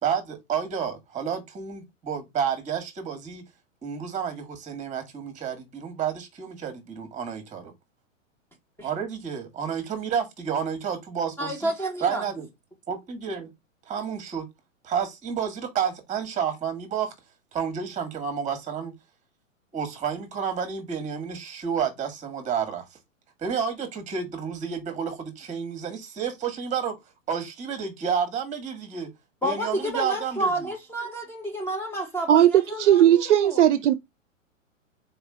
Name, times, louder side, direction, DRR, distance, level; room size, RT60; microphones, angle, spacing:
voice 1, 0.0-3.4 3.8-7.7 8.8-11.7 12.0-12.5 12.9-13.5 13.9-14.5 14.8-17.1 17.5-18.9 19.7-22.9 23.4-27.0 27.3-29.1 29.4-30.7, right 7 dB, 20° right, 1.4 m, -30 dB
voice 2, 11.4-12.2 29.4-33.6, right 1 dB, 5° left, 0.8 m, -30 dB
voice 3, 32.3-33.9, right 11 dB, 65° right, 0.5 m, -18 dB
4.2 x 3.1 x 3.7 m
figure-of-eight pair, 110°, 39 cm